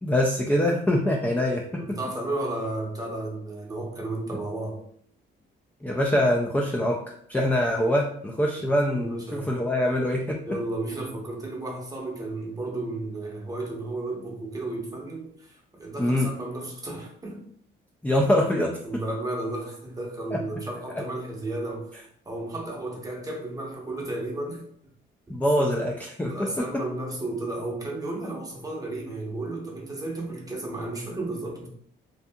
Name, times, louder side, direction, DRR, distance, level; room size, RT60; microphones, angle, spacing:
voice 1, 0.0-1.8 5.8-7.0 7.3-10.4 16.0-16.3 18.0-18.8 20.3-20.4 20.9-21.0 25.3-26.8, left 1 dB, 10° left, 0 dB, 0.3 m, -24 dB
voice 2, 1.8-4.8 8.6-9.5 10.5-17.4 18.8-22.0 22.2-24.6 25.3-25.8 26.3-31.7, right 2 dB, 20° right, -1 dB, 0.8 m, -33 dB
2.6 x 2.6 x 2.2 m, 0.63 s
cardioid pair, 90°, 20 cm